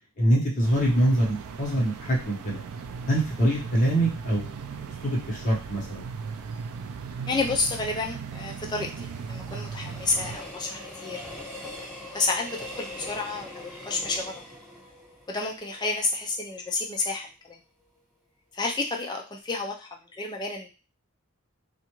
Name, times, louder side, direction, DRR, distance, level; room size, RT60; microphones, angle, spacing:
voice 1, 0.2-2.6 3.1-6.1, right 1 dB, 35° left, -4 dB, 0.9 m, -24 dB
sound 1, 0.6-10.4, right 5 dB, 80° right, 0.3 m, -38 dB
voice 2, 7.2-11.2 12.1-14.4 15.3-17.6 18.5-20.7, left 3 dB, 20° left, 1 dB, 0.3 m, -30 dB
Train, 8.0-16.8 17.2-17.3, left 1 dB, ahead, 1.5 m, -43 dB
2.4 x 2.3 x 2.9 m, 0.32 s
head